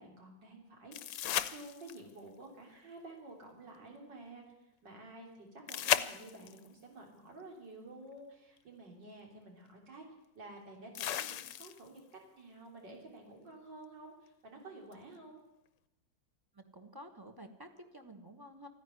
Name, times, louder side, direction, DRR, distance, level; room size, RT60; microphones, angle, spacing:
voice 1, 0.0-10.0 10.4-12.0 12.4-15.4, right 2 dB, 70° right, 0 dB, 4.0 m, -51 dB
sound 1, 0.9-2.2 5.7-6.7 8.6-8.7 10.9-12.0 14.9-15.0, left 11 dB, 80° left, 1.4 m, -35 dB
voice 2, 16.5-18.7, equal, 15° right, 6 dB, 1.1 m, -51 dB
14.0 x 10.0 x 9.7 m, 0.93 s
omnidirectional pair, 2.0 m